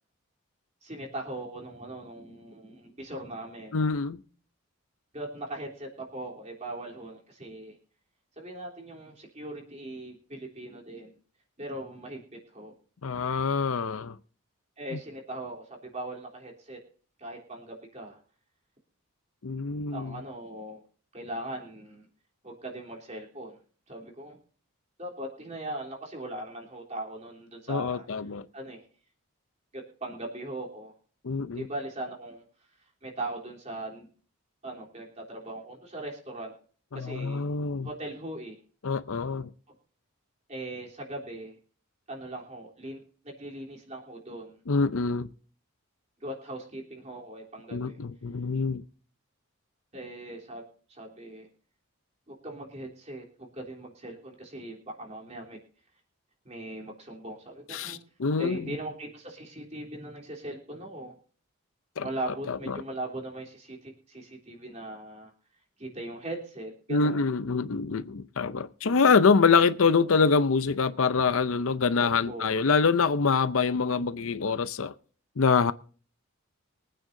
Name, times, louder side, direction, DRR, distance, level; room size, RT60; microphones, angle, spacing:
voice 1, 0.8-3.8 5.1-7.8 8.4-11.1 11.6-12.7 14.8-16.8 17.2-18.2 19.9-20.8 21.1-22.1 22.4-23.6 23.9-24.4 25.0-28.1 28.5-28.8 29.7-30.9 31.5-32.4 33.0-34.1 34.6-36.5 36.9-37.5 37.8-38.6 40.5-41.6 42.1-44.6 46.2-48.0 49.9-50.6 50.9-51.5 52.3-55.6 56.5-58.0 58.4-61.1 62.0-65.3 65.8-67.2 72.0-72.5, right 1 dB, 30° right, 3.5 m, -39 dB
voice 2, 3.7-4.2 13.0-14.2 19.4-20.2 27.7-28.5 31.2-31.7 36.9-37.9 38.8-39.5 44.7-45.3 47.7-48.8 57.7-58.8 62.0-62.1 62.5-62.8 66.9-74.9 75.4-75.7, left 5 dB, 70° left, 0.6 m, -25 dB
23.5 x 9.1 x 2.7 m
head